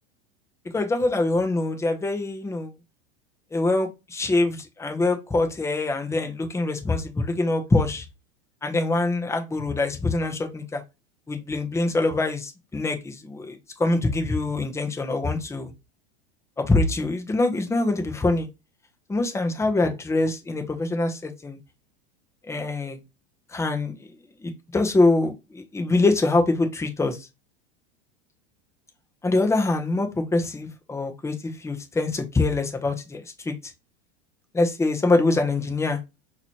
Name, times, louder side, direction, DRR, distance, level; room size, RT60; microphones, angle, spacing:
voice 1, 0.7-2.7 3.5-8.0 8.6-10.8 11.3-15.7 16.6-18.5 19.1-21.6 22.5-23.0 23.5-24.1 24.4-27.2 29.2-33.5 34.5-36.0, left 2 dB, 10° left, 0.9 m, -24 dB
5.8 x 2.9 x 3.0 m
hypercardioid pair, 115°, 32 cm